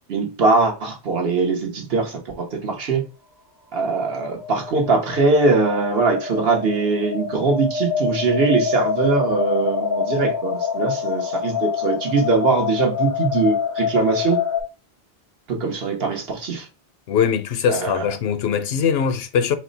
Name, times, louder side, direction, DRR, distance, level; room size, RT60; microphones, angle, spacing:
voice 1, 0.1-3.0 3.7-14.4 15.5-16.7 17.7-18.0, right 3 dB, 65° right, 1.1 m, -21 dB
sound 1, 4.4-14.6, left 6 dB, 25° left, 0.5 m, -26 dB
voice 2, 17.1-19.6, left 7 dB, 75° left, 0.8 m, -21 dB
4.2 x 2.1 x 3.8 m
omnidirectional pair, 1.1 m